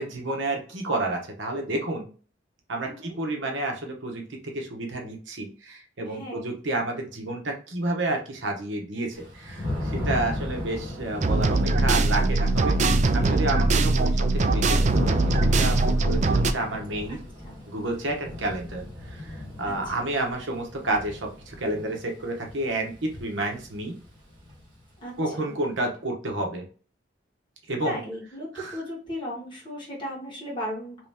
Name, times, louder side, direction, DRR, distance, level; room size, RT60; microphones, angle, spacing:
voice 1, 0.0-2.1 2.7-12.8 13.1-17.2 17.7-18.8 19.1-23.9 25.2-26.6 27.7-28.0 28.5-28.8, right 2 dB, 70° right, 2 dB, 1.0 m, -30 dB
voice 2, 2.8-3.2 6.1-6.5 13.0-13.3 17.1-17.6 19.6-20.0 25.0-25.5 27.8-31.0, equal, 25° left, -4 dB, 1.7 m, -37 dB
Thunder / Rain, 9.2-24.9, left 1 dB, 25° right, 1.5 m, -36 dB
sound 1, 11.2-16.5, right 2 dB, 40° right, 0.3 m, -21 dB
3.1 x 2.9 x 3.4 m, 0.38 s
head